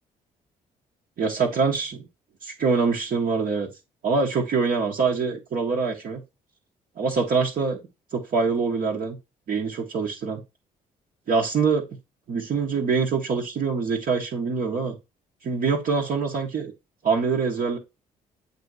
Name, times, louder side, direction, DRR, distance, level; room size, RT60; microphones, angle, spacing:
voice 1, 1.2-2.0 2.4-3.7 4.0-6.2 7.0-7.8 8.1-9.2 9.5-10.4 11.3-11.8 12.3-14.9 15.4-16.7 17.0-17.8, right 5 dB, 60° right, -3 dB, 1.2 m, -24 dB
7.3 x 2.7 x 4.7 m, 0.25 s
supercardioid pair, 60°, 17 cm